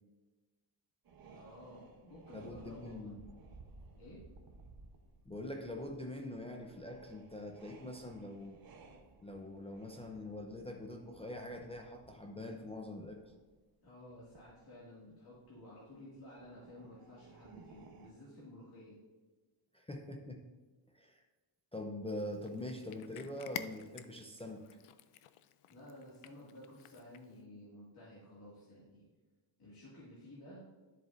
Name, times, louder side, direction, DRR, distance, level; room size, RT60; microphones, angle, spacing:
sound 1, 1.0-14.7 15.2-15.6 16.3-18.1, right 4 dB, 45° right, 1.0 m, -59 dB
voice 1, 1.3-3.2 3.9-4.3 13.8-19.0 25.7-29.1 29.6-30.6, left 1 dB, 50° left, -8 dB, 2.2 m, -53 dB
voice 2, 2.3-3.2 5.3-8.6 9.2-13.2 19.7-20.4 20.9-21.2 21.7-24.7, left 1 dB, 15° left, 2 dB, 0.5 m, -44 dB
Cat, 22.2-27.4, left 11 dB, 85° left, 0.5 m, -50 dB
10.5 x 7.4 x 2.6 m, 1.3 s
cardioid pair, 130°, 49 cm